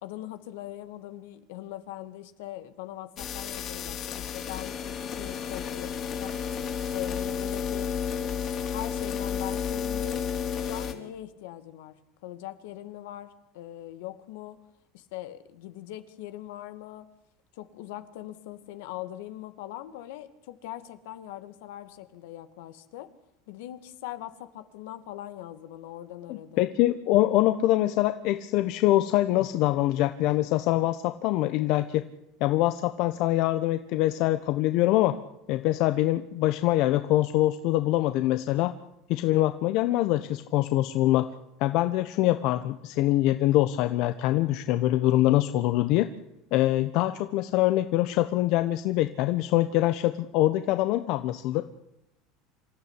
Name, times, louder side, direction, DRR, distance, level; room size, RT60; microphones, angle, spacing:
voice 1, 0.0-6.4 6.9-10.2 10.6-12.0 12.2-14.6 14.9-17.1 17.5-23.1 23.5-26.7, left 13 dB, 80° left, 10 dB, 2.3 m, -41 dB
sound 1, 3.2-10.9, left 7 dB, 40° left, 3.9 m, -32 dB
voice 2, 26.3-32.0 32.4-35.2 35.5-38.7 39.1-41.3 41.6-46.1 46.5-51.6, left 15 dB, 60° left, 10 dB, 1.2 m, -24 dB
26.5 x 14.0 x 10.0 m, 0.86 s
supercardioid pair, 130°, 0 cm